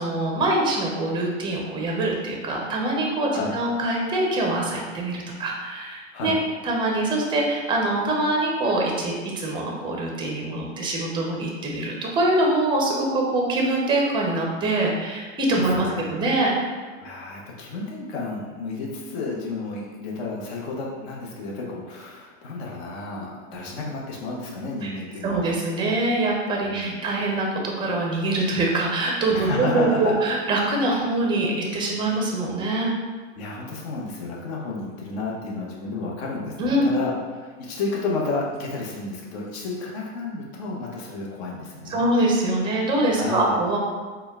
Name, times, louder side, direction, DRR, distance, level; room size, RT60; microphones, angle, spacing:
voice 1, 0.0-6.4 6.6-16.5 24.8-24.9 25.2-32.9 36.6-36.9 41.9-43.8, right 2 dB, 15° right, -1 dB, 0.5 m, -24 dB
voice 2, 15.5-16.2 17.0-25.5 26.6-27.0 29.3-30.1 33.4-42.1 43.1-43.6, left 3 dB, 55° left, -3 dB, 0.9 m, -31 dB
4.2 x 2.2 x 3.5 m, 1.5 s
hypercardioid pair, 130°, 38 cm